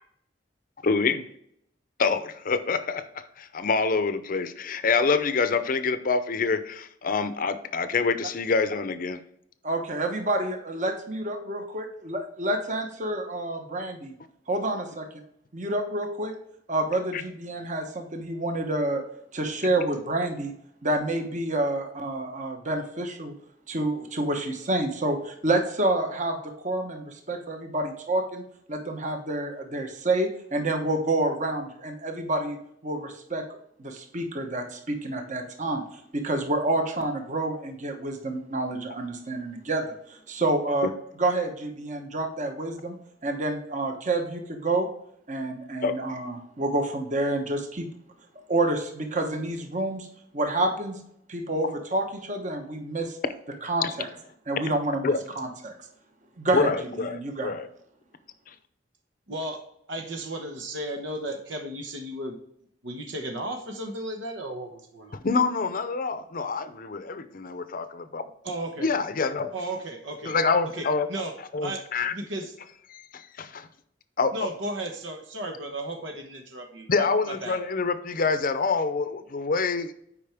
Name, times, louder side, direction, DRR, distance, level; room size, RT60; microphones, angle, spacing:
voice 1, 0.8-1.2 2.0-9.2 17.1-17.2 45.8-45.9 53.8-53.9 55.0-55.2 56.5-57.7 65.2-68.2 68.8-69.5 70.2-71.1 71.5-72.1 72.9-73.7 74.2-74.3 76.9-79.9, left 4 dB, 50° left, 11 dB, 0.6 m, -26 dB
voice 2, 9.6-14.1 14.5-15.0 15.5-16.3 16.7-19.0 19.3-20.5 20.8-23.3 23.7-26.4 26.6-28.4 28.7-32.6 32.8-33.4 33.8-40.9 41.2-43.0 43.2-44.9 45.3-47.9 48.5-50.1 50.3-51.0 51.3-53.2 53.6-54.1 54.5-55.7 56.4-56.7 57.0-57.5, right 2 dB, 40° right, 4 dB, 1.1 m, -28 dB
voice 3, 59.3-59.6 59.9-62.4 62.8-65.2 68.4-68.9 69.5-70.3 70.6-71.3 71.6-71.8 72.1-72.5 74.3-77.6, right 1 dB, 90° right, 3 dB, 1.2 m, -34 dB
8.6 x 5.1 x 3.5 m, 0.72 s
head